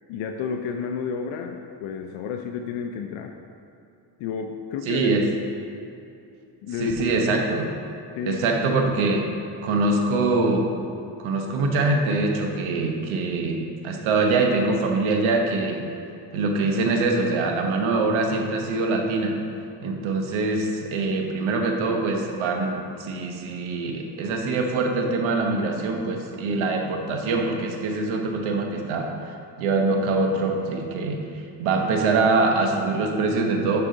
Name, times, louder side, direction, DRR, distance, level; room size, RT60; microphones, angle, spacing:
voice 1, 0.1-3.3 4.2-5.1 6.6-7.0 8.2-8.4, left 6 dB, 80° left, 4 dB, 0.6 m, -31 dB
voice 2, 4.9-5.3 6.8-7.7 8.2-9.2 9.6-10.7 11.2-15.8 16.3-19.3 19.8-33.8, right 3 dB, 80° right, 3 dB, 1.1 m, -24 dB
11.5 x 4.9 x 3.9 m, 2.7 s
cardioid pair, 115°, 47 cm